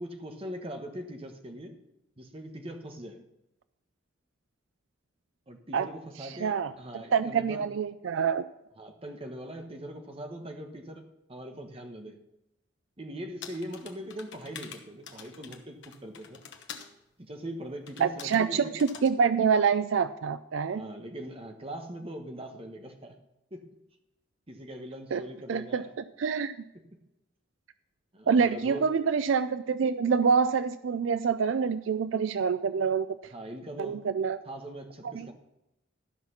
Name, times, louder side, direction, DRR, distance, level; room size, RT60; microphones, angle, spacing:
voice 1, 0.0-1.8 2.2-3.2 5.5-7.7 8.8-11.0 11.3-12.2 13.0-16.4 17.2-18.8 20.7-23.2 23.5-23.6 24.5-25.9 26.7-26.8 28.1-28.9 33.3-34.0 34.4-35.3, right 1 dB, 30° right, 5 dB, 1.3 m, -41 dB
voice 2, 6.2-6.7 7.1-8.5 18.0-20.8 25.1-25.2 25.5-25.8 26.2-26.5 28.3-33.1 33.8-34.4 35.0-35.3, right 6 dB, 80° right, 13 dB, 0.4 m, -26 dB
sound 1, 13.4-16.9 17.9-18.4 18.8-19.1, left 7 dB, 65° left, 1.1 m, -46 dB
13.0 x 5.9 x 5.7 m, 0.87 s
head